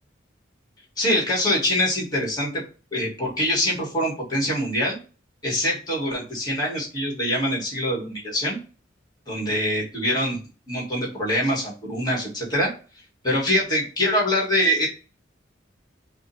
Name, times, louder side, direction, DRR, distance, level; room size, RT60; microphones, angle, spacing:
voice 1, 1.0-2.6 2.9-5.0 5.4-8.6 9.3-10.4 10.7-12.7 13.2-14.9, equal, 20° left, -2 dB, 1.5 m, -24 dB
4.8 x 2.1 x 2.7 m, 0.35 s
head